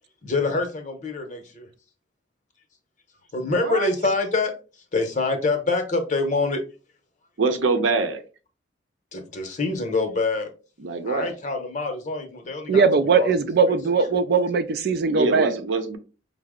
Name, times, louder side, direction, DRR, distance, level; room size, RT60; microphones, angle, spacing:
voice 1, 0.2-1.7 3.3-4.5 4.9-6.6 9.1-10.5 11.1-13.3 13.7-13.8, left 3 dB, 40° left, 0.7 m, -25 dB
voice 2, 7.4-8.2 10.8-11.3 15.0-16.0, right 4 dB, 80° right, 0.7 m, -24 dB
voice 3, 12.7-15.5, right 4 dB, 55° right, 0.3 m, -20 dB
5.5 x 2.0 x 3.6 m
head